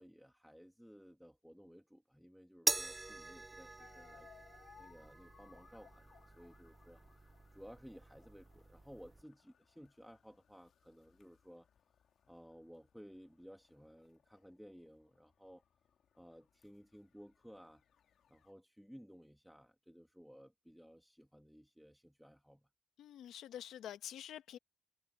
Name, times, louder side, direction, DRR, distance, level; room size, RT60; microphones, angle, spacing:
voice 1, 0.0-4.3 4.8-11.7 12.2-15.6 16.1-17.8 18.3-22.7, equal, ahead, 1.7 m, -57 dB
sound 1, 2.7-9.2, right 2 dB, 15° right, 0.5 m, -43 dB
sound 2, 3.8-18.5, left 8 dB, 60° left, 2.3 m, -67 dB
voice 2, 23.0-24.6, left 10 dB, 85° left, 1.3 m, -47 dB
cardioid pair, 125°, 0 cm